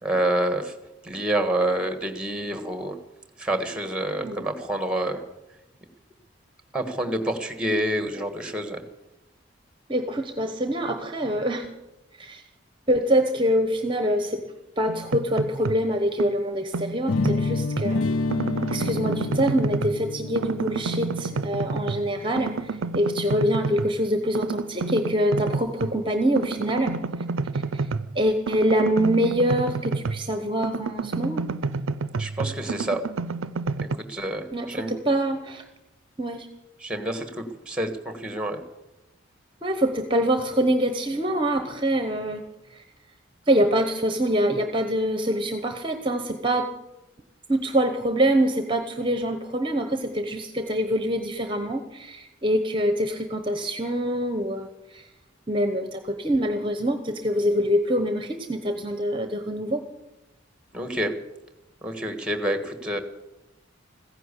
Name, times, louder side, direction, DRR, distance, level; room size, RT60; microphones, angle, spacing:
voice 1, 0.0-0.7 1.0-3.0 3.4-5.2 6.7-8.8 32.2-33.0 34.1-34.9 36.8-38.6 60.7-61.1 61.8-63.0, right 1 dB, 5° right, 8 dB, 1.5 m, -27 dB
voice 2, 9.9-11.7 12.2-12.4 12.9-14.4 14.8-18.0 18.7-26.9 27.5-27.8 28.1-31.5 34.5-35.6 36.2-36.5 39.6-42.4 42.7-42.8 43.5-46.7 47.5-55.0 55.5-59.8, equal, 25° right, 7 dB, 1.0 m, -25 dB
sound 1, 14.9-15.9 16.2-17.9 18.3-20.1 20.4-22.1 22.4-24.0 24.3-26.0 26.4-30.3 30.6-34.0, right 4 dB, 80° right, 0.5 m, -29 dB
sound 2, 17.1-23.0, left 3 dB, 75° left, 0.5 m, -29 dB
15.5 x 10.5 x 8.3 m, 0.94 s
head